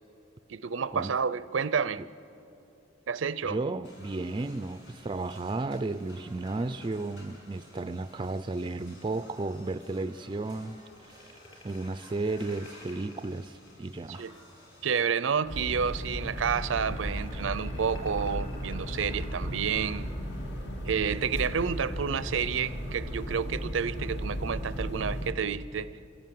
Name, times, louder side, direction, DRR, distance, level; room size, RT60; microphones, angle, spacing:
voice 1, 0.5-2.0 3.1-3.6 14.2-14.3 14.8-20.1 20.8-26.0, right 6 dB, 80° right, 0.5 m, -30 dB
voice 2, 3.4-10.8 11.6-14.2, right 3 dB, 25° right, 0.4 m, -33 dB
sound 1, 3.8-15.1, left 1 dB, 85° left, 6.4 m, -53 dB
sound 2, 10.9-14.0 15.5-21.0, left 1 dB, 30° left, 3.7 m, -49 dB
sound 3, 15.4-25.3, equal, 60° left, 2.0 m, -35 dB
25.5 x 16.5 x 7.6 m
head